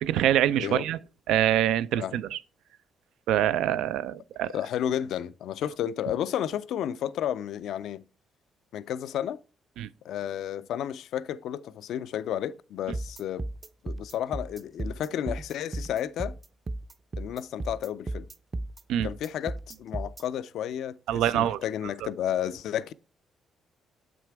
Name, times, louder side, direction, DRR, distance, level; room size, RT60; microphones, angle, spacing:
voice 1, 0.0-1.0 1.3-2.4 3.3-4.6 9.8-9.9 18.9-19.1 21.1-21.6, right 11 dB, 90° right, 0.3 m, -25 dB
voice 2, 4.5-8.0 8.7-9.4 10.0-13.4 13.8-16.3 17.2-18.3 19.0-22.9, left 10 dB, 80° left, 0.3 m, -32 dB
sound 1, 12.9-20.2, right 2 dB, 30° right, 0.5 m, -35 dB
7.4 x 6.1 x 3.4 m
cardioid pair, 90°, 0 cm